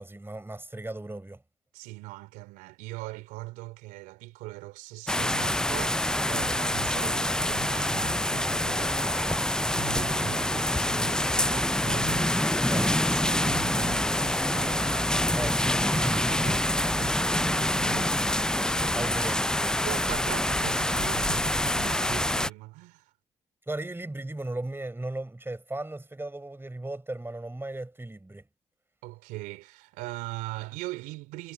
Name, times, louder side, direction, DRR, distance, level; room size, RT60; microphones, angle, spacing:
voice 1, 0.0-1.4 12.7-12.9 15.4-15.8 18.9-19.7 23.7-28.4, right 2 dB, 15° right, 4.8 m, -36 dB
voice 2, 1.7-15.6 15.8-19.4 19.8-23.1 29.0-31.5, right 20 dB, 80° right, 3.0 m, -41 dB
sound 1, 5.1-22.5, left 1 dB, 5° left, 0.5 m, -26 dB
hypercardioid pair, 45°, 14 cm